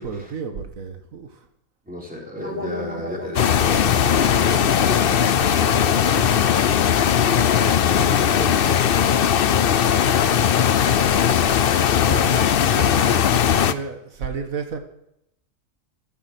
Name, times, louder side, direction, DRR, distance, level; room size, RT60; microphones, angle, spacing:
voice 1, 0.0-1.5 12.0-14.8, right 5 dB, 90° right, 6 dB, 1.9 m, -32 dB
voice 2, 1.8-6.5 7.1-9.2, left 1 dB, 5° right, -2 dB, 3.5 m, -34 dB
sound 1, 2.4-7.3, left 1 dB, 45° right, 3.5 m, -37 dB
sound 2, 3.4-13.7, left 8 dB, 55° left, 0.7 m, -18 dB
15.5 x 11.5 x 6.1 m, 0.79 s
omnidirectional pair, 1.4 m